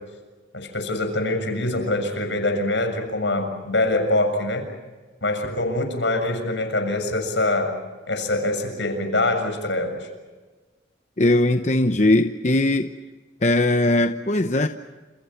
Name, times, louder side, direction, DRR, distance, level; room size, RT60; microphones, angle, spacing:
voice 1, 0.5-4.7 5.2-7.8 8.1-10.1, left 2 dB, 80° left, 7.2 m, -24 dB
voice 2, 11.2-12.9 13.4-14.7, left 2 dB, 40° left, 0.9 m, -19 dB
29.5 x 28.5 x 5.9 m
head